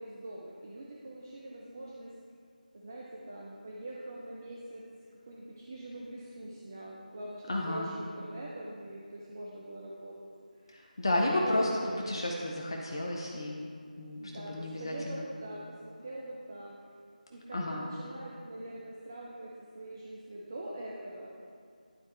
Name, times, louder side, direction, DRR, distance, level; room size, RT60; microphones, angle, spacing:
voice 1, 0.0-2.1 2.7-4.8 5.3-10.2 10.6-10.9 11.2-11.6 11.8-12.2 14.2-16.8 17.3-21.3, right 1 dB, 25° right, -4 dB, 0.5 m, -43 dB
voice 2, 7.5-7.9 10.7-11.7 12.1-13.7 14.0-15.2 17.5-17.9, left 1 dB, 30° left, -1 dB, 0.6 m, -32 dB
11.0 x 4.2 x 3.3 m, 2.2 s
figure-of-eight pair, 165°, 5 cm